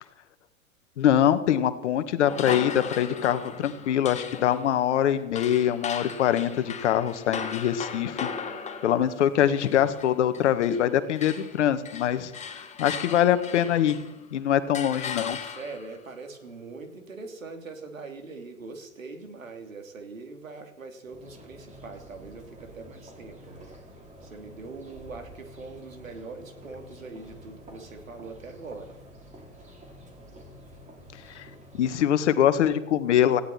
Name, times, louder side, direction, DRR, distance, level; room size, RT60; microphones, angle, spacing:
voice 1, 1.0-8.3 8.8-14.0 14.3-15.4 31.3-31.5 31.7-33.4, left 10 dB, 60° left, 11 dB, 1.7 m, -24 dB
sound 1, 2.3-10.9 11.2-14.2 14.7-15.9, left 6 dB, 15° left, 2.0 m, -37 dB
voice 2, 15.4-23.7 24.2-29.0, right 3 dB, 80° right, 4 dB, 3.3 m, -42 dB
sound 2, 21.1-31.9, equal, 20° right, 4.0 m, -48 dB
18.5 x 16.0 x 4.4 m, 0.92 s
figure-of-eight pair, 100°, 39 cm